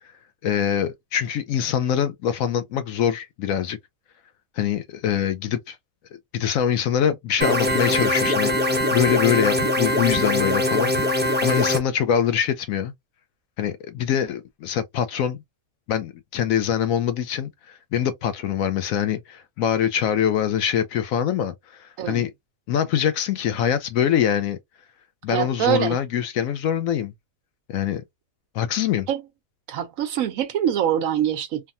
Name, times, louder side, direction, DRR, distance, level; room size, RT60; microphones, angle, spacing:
voice 1, 0.4-3.8 4.6-5.8 6.3-12.9 13.6-15.4 15.9-22.3 22.7-24.6 25.2-27.1 27.7-28.0 28.5-29.1, left 9 dB, 70° left, 1.0 m, -24 dB
sound 1, 7.4-11.8, left 1 dB, 15° right, 0.4 m, -22 dB
voice 2, 25.3-26.0 29.1-29.2 29.7-31.7, right 10 dB, 70° right, 1.0 m, -24 dB
3.4 x 2.1 x 2.5 m
omnidirectional pair, 1.6 m